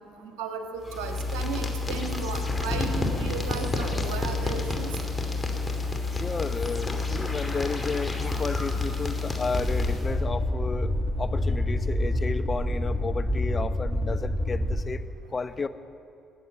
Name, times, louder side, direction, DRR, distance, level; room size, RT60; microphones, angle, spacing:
voice 1, 0.2-5.0, right 5 dB, 75° right, 5 dB, 1.4 m, -35 dB
sound 1, 0.8-10.2, left 3 dB, 15° left, 2.7 m, -29 dB
voice 2, 6.1-10.9 11.2-15.0 15.3-15.7, left 4 dB, 35° left, 11 dB, 0.8 m, -32 dB
sound 2, 9.6-14.8, left 1 dB, ahead, 1.6 m, -27 dB
19.5 x 7.8 x 8.8 m, 2.6 s
hypercardioid pair, 55°, 0 cm